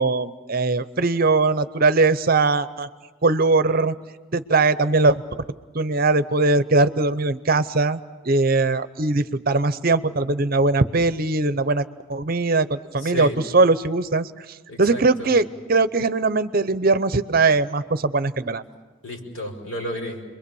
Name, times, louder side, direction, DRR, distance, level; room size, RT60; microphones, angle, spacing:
voice 1, 0.0-2.9 3.2-3.9 4.3-5.2 5.7-8.0 8.2-11.8 12.1-14.3 14.8-18.6, right 3 dB, 45° right, 13 dB, 0.7 m, -20 dB
voice 2, 13.0-13.4 14.7-15.4 19.0-20.2, left 1 dB, 75° left, 0 dB, 5.4 m, -32 dB
29.5 x 22.5 x 7.0 m, 1.3 s
head